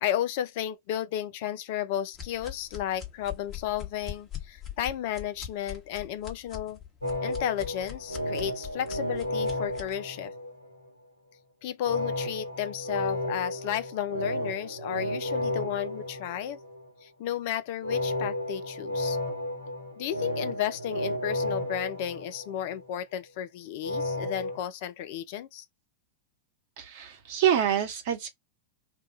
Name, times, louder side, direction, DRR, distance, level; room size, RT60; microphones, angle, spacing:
voice 1, 0.0-6.8 7.2-10.3 11.6-16.6 17.0-19.2 20.0-25.7, left 11 dB, 50° left, 0.4 m, -33 dB
sound 1, 2.1-10.0, left 10 dB, 25° left, 1.2 m, -42 dB
sound 2, 7.0-10.9 11.8-16.9 17.8-22.9 23.8-24.6, left 1 dB, 85° left, 1.1 m, -33 dB
voice 2, 26.8-28.3, right 9 dB, 50° right, 1.1 m, -26 dB
2.7 x 2.3 x 3.8 m
figure-of-eight pair, 90°, 0 cm